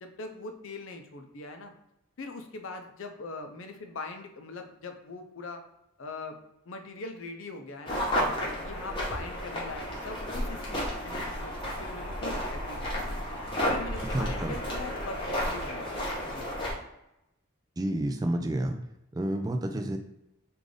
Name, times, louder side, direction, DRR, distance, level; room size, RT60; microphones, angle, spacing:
voice 1, 0.0-1.7 2.2-5.6 6.0-6.4 6.7-8.0 8.4-13.2 13.7-16.0 16.3-16.5, left 3 dB, 70° left, 5 dB, 0.5 m, -41 dB
sound 1, 7.9-16.7, equal, 25° left, 1.0 m, -32 dB
voice 2, 14.1-14.6 17.8-18.8 19.1-20.0, right 1 dB, 20° right, 5 dB, 0.3 m, -30 dB
3.8 x 2.5 x 3.2 m, 0.86 s
head